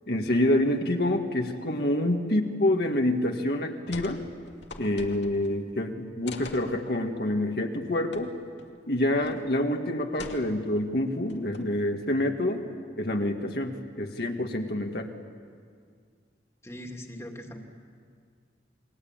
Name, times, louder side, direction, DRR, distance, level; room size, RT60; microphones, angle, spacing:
voice 1, 0.1-4.2 4.8-8.3 8.9-12.6 13.0-15.1, left 1 dB, 60° left, 3 dB, 1.9 m, -27 dB
sound 1, 3.9-4.2 4.5-5.6 6.3-6.7 8.1-8.2 8.6-8.7 9.2-9.5 10.2-10.8 11.3-11.8, left 3 dB, 85° left, 2.5 m, -43 dB
voice 2, 16.6-17.6, equal, 15° left, 3 dB, 2.3 m, -40 dB
29.0 x 22.5 x 8.9 m, 2.1 s
head